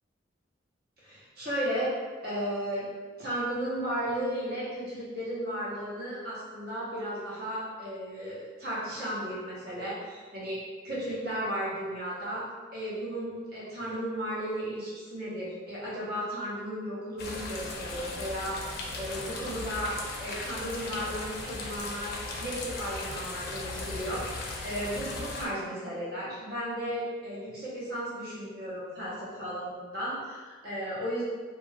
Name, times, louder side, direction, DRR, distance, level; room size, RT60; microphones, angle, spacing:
voice 1, 1.0-1.9 2.2-2.9 3.2-12.4 12.7-19.9 20.2-22.1 22.4-24.4 24.6-31.2, equal, 50° right, -8 dB, 1.0 m, -34 dB
sound 1, 17.2-25.5, left 2 dB, 50° left, 0.4 m, -37 dB
2.5 x 2.3 x 3.2 m, 1.4 s
head